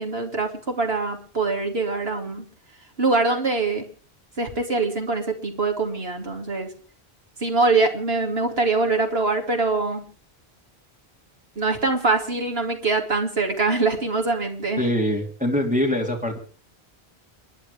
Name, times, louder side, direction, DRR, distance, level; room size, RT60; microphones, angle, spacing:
voice 1, 0.0-2.4 3.0-3.9 4.4-6.7 7.4-10.0 11.6-14.8, right 3 dB, 70° right, 3 dB, 2.9 m, -23 dB
voice 2, 14.8-16.4, left 1 dB, 5° right, 0 dB, 3.7 m, -23 dB
30.0 x 10.5 x 3.5 m, 0.40 s
omnidirectional pair, 1.1 m